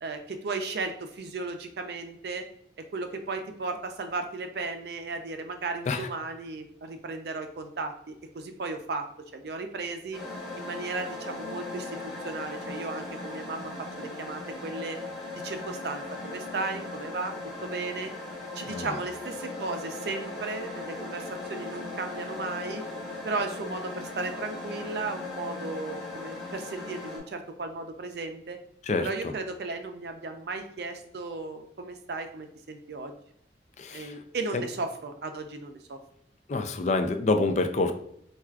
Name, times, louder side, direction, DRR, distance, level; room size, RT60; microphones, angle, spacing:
voice 1, 0.0-2.5 2.8-10.2 10.6-15.0 15.4-18.1 18.6-22.8 23.2-28.6 29.0-33.1 33.9-36.0, right 3 dB, 65° right, 6 dB, 0.4 m, -35 dB
sound 1, 10.1-27.2, left 2 dB, ahead, 1.0 m, -38 dB
voice 2, 18.7-19.0 28.8-29.3 33.8-34.2 34.5-34.6 36.5-37.9, left 3 dB, 40° left, 7 dB, 0.3 m, -27 dB
4.4 x 2.3 x 2.3 m, 0.71 s
head